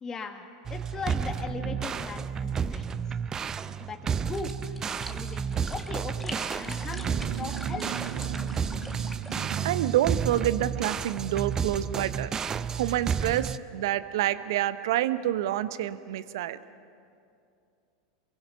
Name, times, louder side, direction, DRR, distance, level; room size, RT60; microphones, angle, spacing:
voice 1, 0.0-3.2 3.8-4.8 5.1-8.0, left 4 dB, 25° left, 5 dB, 1.6 m, -39 dB
sound 1, 0.6-13.6, right 7 dB, 25° right, 0.6 m, -31 dB
sound 2, 4.3-9.7, left 1 dB, 5° left, 1.9 m, -44 dB
voice 2, 6.8-7.7 8.2-12.3 12.7-16.6, right 13 dB, 65° right, 14 dB, 0.9 m, -29 dB
28.0 x 23.0 x 5.7 m, 2.5 s
hypercardioid pair, 90°, 2 cm